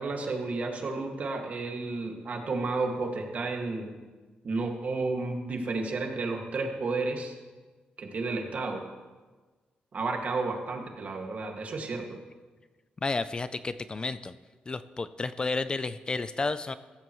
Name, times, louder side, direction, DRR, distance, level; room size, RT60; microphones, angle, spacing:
voice 1, 0.0-3.9 4.4-7.4 8.0-8.8 9.9-12.2, right 3 dB, 50° right, 2 dB, 2.0 m, -32 dB
voice 2, 13.0-14.3 14.7-16.7, left 3 dB, 30° left, 13 dB, 0.4 m, -31 dB
15.5 x 14.0 x 3.1 m, 1.3 s
cardioid pair, 110°, 3 cm